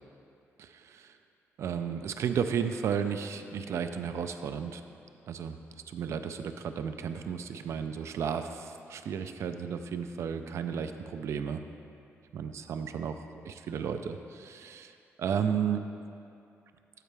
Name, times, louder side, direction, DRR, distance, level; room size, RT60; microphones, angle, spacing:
voice 1, 0.6-1.1 1.6-4.8 5.3-5.6 5.9-11.6 12.3-14.9 15.2-15.8, right 7 dB, 65° right, 8 dB, 0.4 m, -33 dB
12.0 x 4.5 x 3.3 m, 2.6 s
wide cardioid pair, 155°, 5 cm